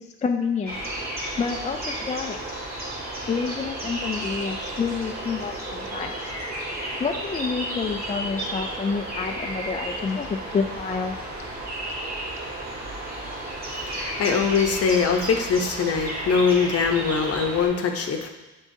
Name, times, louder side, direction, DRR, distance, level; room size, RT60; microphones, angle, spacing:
voice 1, 0.2-0.8 1.4-2.4 3.3-6.3 7.0-11.2, left 5 dB, 25° left, 4 dB, 0.4 m, -28 dB
sound 1, 0.7-17.7, right 1 dB, 30° right, 2.0 m, -33 dB
voice 2, 13.7-18.3, left 5 dB, 50° left, 4 dB, 0.8 m, -23 dB
9.9 x 3.6 x 2.7 m, 1.1 s
cardioid pair, 90°, 30 cm